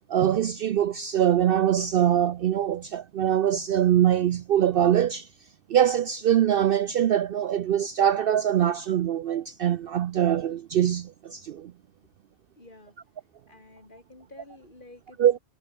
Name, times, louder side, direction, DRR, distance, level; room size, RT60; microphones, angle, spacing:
voice 1, 0.1-5.3 5.7-11.7 15.2-15.4, right 10 dB, 60° right, 0.7 m, -23 dB
voice 2, 12.6-12.9 13.5-15.4, left 2 dB, 45° left, 3.8 m, -50 dB
omnidirectional pair, 1.2 m